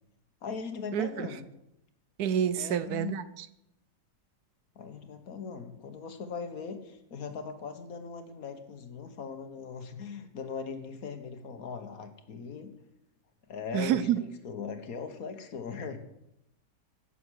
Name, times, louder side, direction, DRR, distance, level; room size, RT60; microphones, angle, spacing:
voice 1, 0.4-1.5 2.6-3.1 4.8-12.7 13.5-16.0, left 5 dB, 55° left, 1.6 m, -39 dB
voice 2, 0.9-1.3 2.2-3.5 13.7-14.2, right 9 dB, 70° right, 1.1 m, -28 dB
16.0 x 6.9 x 6.4 m
omnidirectional pair, 1.8 m